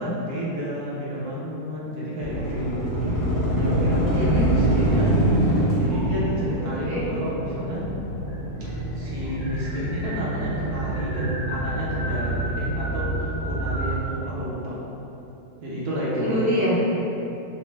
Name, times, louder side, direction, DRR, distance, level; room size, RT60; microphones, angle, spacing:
voice 1, 0.0-5.1 5.4-7.8 8.6-14.8 15.6-16.4, equal, 65° right, -7 dB, 1.1 m, -30 dB
sound 1, 2.2-14.0, right 1 dB, 65° left, 1.7 m, -25 dB
voice 2, 4.1-4.5 6.6-7.0 16.2-16.8, equal, 10° right, -12 dB, 0.3 m, -25 dB
sound 2, 4.8-5.4 5.9-6.5 7.5-7.6 7.9-8.0 8.3-14.0, equal, 35° left, 1.1 m, -37 dB
4.1 x 2.0 x 3.2 m, 2.9 s
omnidirectional pair, 2.0 m